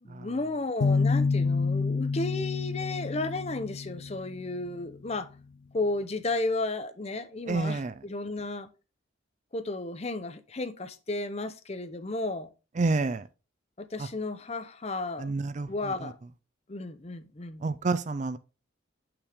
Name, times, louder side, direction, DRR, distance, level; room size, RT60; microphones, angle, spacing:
voice 1, 0.0-5.3 5.7-8.7 9.5-12.5 13.8-15.3 15.7-16.2 16.7-17.7, left 2 dB, 30° left, 0.7 m, -33 dB
sound 1, 0.8-4.5, left 4 dB, 65° left, 0.4 m, -28 dB
voice 2, 7.5-7.9 12.8-13.2 15.2-15.7 17.6-18.4, right 3 dB, 35° right, 0.4 m, -28 dB
8.0 x 5.9 x 3.4 m
head